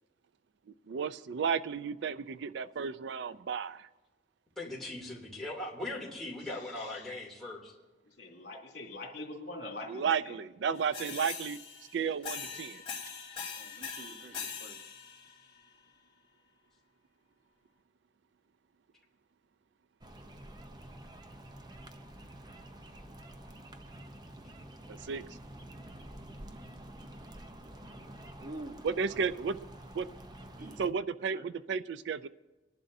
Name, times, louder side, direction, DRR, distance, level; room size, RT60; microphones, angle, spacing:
voice 1, 0.9-3.9 9.9-11.6 11.9-12.8 25.1-25.2 28.8-29.6 29.9-30.1 30.8-32.3, right 6 dB, 70° right, 14 dB, 0.4 m, -33 dB
voice 2, 4.6-7.7, left 2 dB, ahead, -4 dB, 2.7 m, -40 dB
voice 3, 6.4-7.1 8.1-10.4, left 2 dB, 60° left, 0 dB, 3.0 m, -44 dB
sound 1, 10.7-15.6, left 6 dB, 30° left, 3.2 m, -42 dB
voice 4, 13.6-14.8 28.4-28.9 30.6-30.8 31.3-31.5, right 1 dB, 50° right, 5 dB, 1.0 m, -46 dB
sound 2, 20.0-30.9, right 1 dB, 20° right, 0.7 m, -49 dB
26.5 x 11.0 x 2.7 m, 1.2 s
head